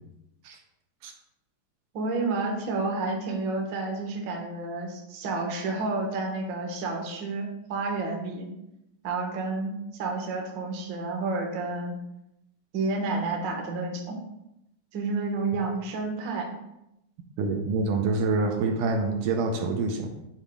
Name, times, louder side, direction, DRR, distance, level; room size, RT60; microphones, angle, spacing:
voice 1, 1.9-8.5 9.0-12.0 12.7-14.2 14.9-16.6, right 3 dB, 55° right, 1 dB, 1.2 m, -30 dB
voice 2, 17.4-20.1, right 3 dB, 80° right, 3 dB, 2.1 m, -26 dB
9.2 x 4.3 x 3.6 m, 0.84 s
omnidirectional pair, 3.9 m